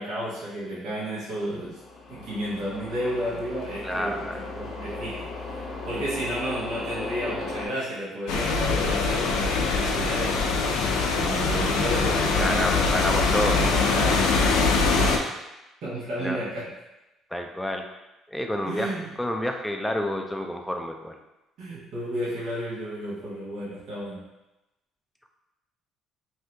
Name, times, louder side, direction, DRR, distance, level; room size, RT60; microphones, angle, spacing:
voice 1, 0.0-1.8 2.1-10.4 11.1-12.9 13.3-14.3 14.9-15.2 15.8-16.7 18.6-19.1 21.6-24.2, equal, 70° right, -9 dB, 1.1 m, -32 dB
sound 1, 1.6-7.7, left 3 dB, 45° left, 0.7 m, -37 dB
voice 2, 3.8-4.4 12.4-13.6 16.2-16.4 17.3-17.9 18.3-21.2, left 1 dB, 5° left, 3 dB, 0.4 m, -29 dB
sound 2, 8.3-15.2, left 4 dB, 85° left, 0.4 m, -23 dB
2.7 x 2.7 x 3.3 m, 0.97 s
cardioid pair, 95°, 0 cm